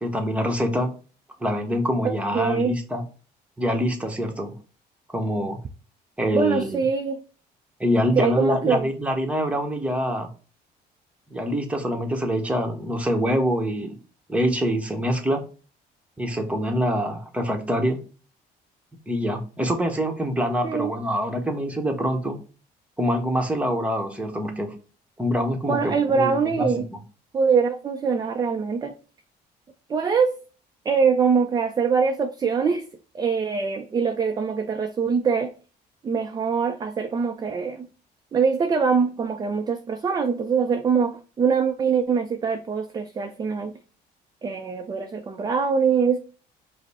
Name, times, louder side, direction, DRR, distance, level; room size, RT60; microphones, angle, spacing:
voice 1, 0.0-0.9 1.4-3.0 3.6-4.5 5.1-5.6 6.2-6.8 7.8-10.3 11.3-14.0 14.3-15.4 16.2-18.0 19.1-22.4 23.0-24.8 25.2-26.8, equal, 10° right, 0.9 m, -25 dB
voice 2, 2.0-2.7 6.3-7.2 8.2-8.9 20.6-20.9 25.7-26.9 27.3-28.9 29.9-30.3 30.9-32.9 33.1-35.5 36.0-37.9 38.3-43.7 44.4-46.2, right 5 dB, 25° right, 0.4 m, -23 dB
5.0 x 2.0 x 4.0 m
cardioid pair, 110°, 17 cm